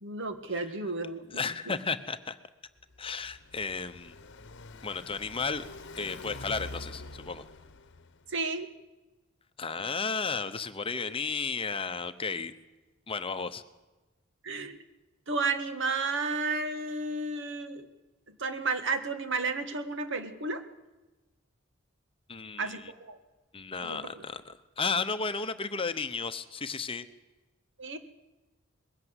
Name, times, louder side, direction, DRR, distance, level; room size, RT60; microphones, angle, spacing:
voice 1, 0.0-1.4 1.7-1.8 8.3-8.7 14.4-14.8 15.3-17.9 18.4-20.6 22.6-23.2 23.8-24.2 27.8-28.0, right 3 dB, 65° right, 9 dB, 1.8 m, -32 dB
voice 2, 1.3-2.4 3.0-4.1 4.8-5.7 5.9-7.4 9.6-12.5 13.1-13.6 22.3-22.9 23.5-27.1, left 4 dB, 25° left, 11 dB, 0.9 m, -33 dB
Car passing by, 2.8-8.3, left 2 dB, 60° left, 1.0 m, -46 dB
21.0 x 17.0 x 8.2 m, 1.1 s
head